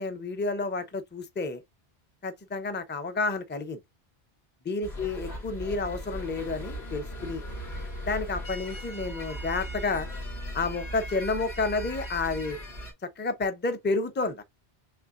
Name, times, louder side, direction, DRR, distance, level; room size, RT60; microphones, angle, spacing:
voice 1, 0.0-1.6 2.2-3.8 4.6-7.4 8.1-10.1 10.5-12.6 13.0-14.4, left 3 dB, 15° left, 0.5 m, -30 dB
sound 1, 4.8-12.9, equal, 85° left, 2.2 m, -38 dB
6.5 x 2.7 x 2.5 m
omnidirectional pair, 1.1 m